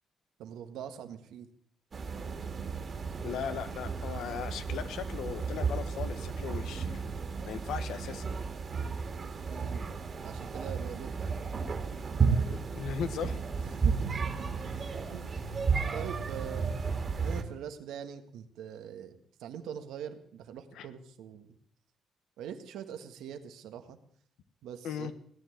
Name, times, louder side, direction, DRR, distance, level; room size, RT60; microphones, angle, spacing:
voice 1, 0.4-1.5 9.5-9.9 10.2-11.3 13.6-15.3 15.9-16.8 17.2-21.6 22.4-24.0 24.6-25.1, right 9 dB, 85° right, 7 dB, 1.7 m, -43 dB
sound 1, 1.9-17.4, right 5 dB, 40° right, 2.3 m, -33 dB
voice 2, 3.2-7.0 7.5-8.3 12.5-13.4 20.7-20.9 24.8-25.1, left 8 dB, 80° left, 12 dB, 1.2 m, -37 dB
17.5 x 9.7 x 7.9 m, 0.63 s
cardioid pair, 90°, 0 cm